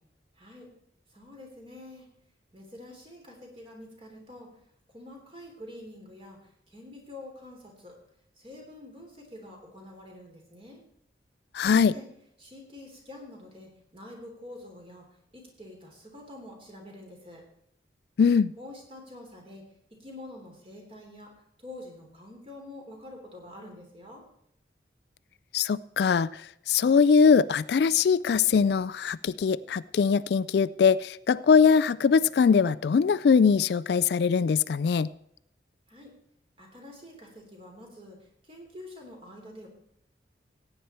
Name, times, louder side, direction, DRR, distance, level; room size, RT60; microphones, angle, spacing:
voice 1, 0.3-0.7 1.1-2.1 2.5-4.5 4.9-8.0 8.4-10.8 11.6-12.1 12.4-15.1 15.3-17.4 18.6-19.6 20.0-21.3 21.6-24.2 35.9-36.1 36.6-39.7, left 1 dB, 30° right, 1 dB, 3.2 m, -46 dB
voice 2, 11.5-11.9 18.2-18.5 25.5-35.1, left 6 dB, 65° left, 18 dB, 0.3 m, -22 dB
15.5 x 9.1 x 4.4 m, 0.75 s
head